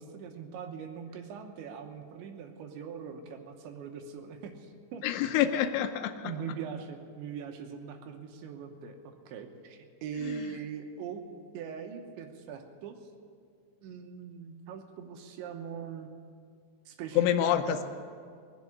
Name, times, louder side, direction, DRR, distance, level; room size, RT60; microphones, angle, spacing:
voice 1, 0.0-5.0 5.4-5.5 6.2-11.2 11.5-13.0 13.8-16.1 16.9-17.8, right 7 dB, 75° right, 5 dB, 3.1 m, -41 dB
voice 2, 5.0-6.3 10.2-10.5 17.1-17.8, left 11 dB, 85° left, 8 dB, 3.0 m, -27 dB
19.5 x 7.4 x 9.8 m, 2.1 s
omnidirectional pair, 5.6 m